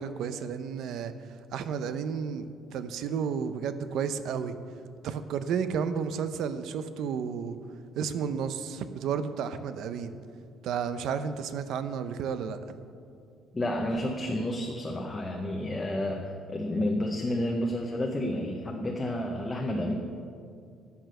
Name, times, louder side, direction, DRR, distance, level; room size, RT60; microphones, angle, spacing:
voice 1, 0.0-4.6 5.0-7.6 7.9-10.1 10.6-12.6, right 7 dB, 65° right, 11 dB, 0.7 m, -32 dB
voice 2, 13.5-20.0, left 1 dB, 15° left, 1 dB, 0.8 m, -30 dB
sound 1, 13.9-14.4, equal, 25° right, 3.2 m, -48 dB
12.0 x 7.0 x 6.5 m, 2.4 s
cardioid pair, 150°, 0 cm